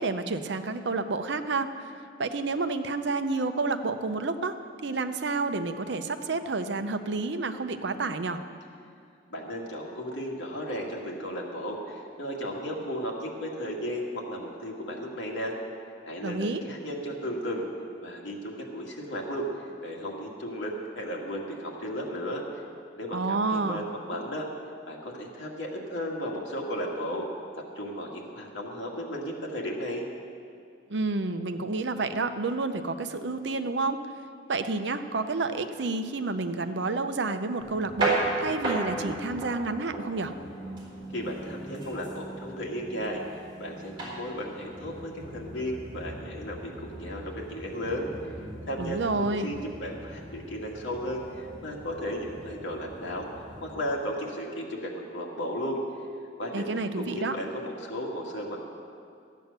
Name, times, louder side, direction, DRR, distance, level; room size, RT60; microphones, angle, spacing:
voice 1, 0.0-1.9 2.2-4.5 4.8-8.4 16.2-16.6 23.1-23.8 30.9-34.0 34.5-40.3 48.8-49.5 56.5-57.4, right 3 dB, 65° right, 9 dB, 0.7 m, -29 dB
voice 2, 9.3-15.5 16.1-17.7 18.0-22.4 23.0-24.5 24.9-27.2 27.8-30.1 41.1-43.2 43.6-48.4 48.6-55.8 56.4-58.6, equal, 75° left, -1 dB, 2.1 m, -35 dB
sound 1, 37.6-53.8, right 2 dB, 25° right, 4.0 m, -37 dB
14.0 x 9.3 x 6.7 m, 2.3 s
head